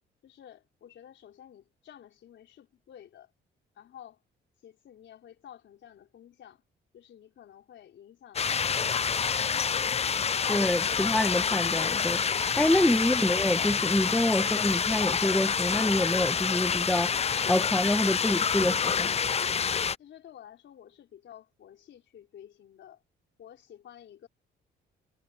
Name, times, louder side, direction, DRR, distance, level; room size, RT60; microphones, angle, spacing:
voice 1, 0.2-3.3 3.7-4.2 4.6-6.6 6.9-8.5 9.2-10.9 20.0-23.0 23.4-24.3, left 10 dB, 70° left, 4.6 m, -51 dB
sound 1, 8.4-20.0, left 6 dB, 30° left, 0.6 m, -27 dB
voice 2, 10.5-17.1 17.5-19.1, left 1 dB, 5° left, 1.3 m, -27 dB
cardioid pair, 90°, 20 cm